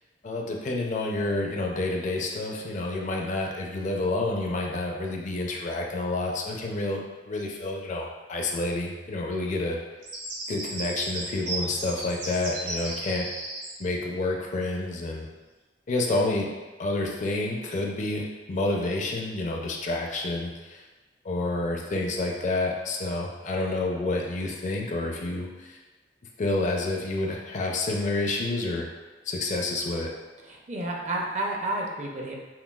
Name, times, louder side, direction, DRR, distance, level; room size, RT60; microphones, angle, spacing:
voice 1, 0.2-9.8 10.5-13.3 13.8-15.3 15.9-16.5 16.8-20.8 21.2-25.8 26.4-28.9 29.3-30.1, left 2 dB, 45° left, 0 dB, 0.4 m, -29 dB
sound 1, 10.0-13.7, right 2 dB, 80° right, 1.4 m, -34 dB
voice 2, 30.4-32.3, right 1 dB, 40° right, 0 dB, 0.5 m, -31 dB
5.7 x 2.3 x 2.3 m, 1.2 s
head